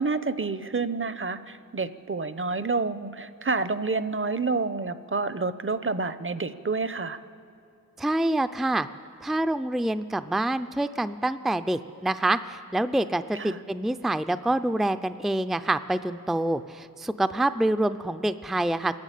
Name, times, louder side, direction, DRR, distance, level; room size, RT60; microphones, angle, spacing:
voice 1, 0.0-7.2 13.3-13.6, right 4 dB, 40° right, 13 dB, 0.9 m, -29 dB
voice 2, 8.0-8.9 9.2-19.0, right 1 dB, ahead, 11 dB, 0.5 m, -26 dB
28.0 x 11.5 x 8.4 m, 2.7 s
wide cardioid pair, 60°, 34 cm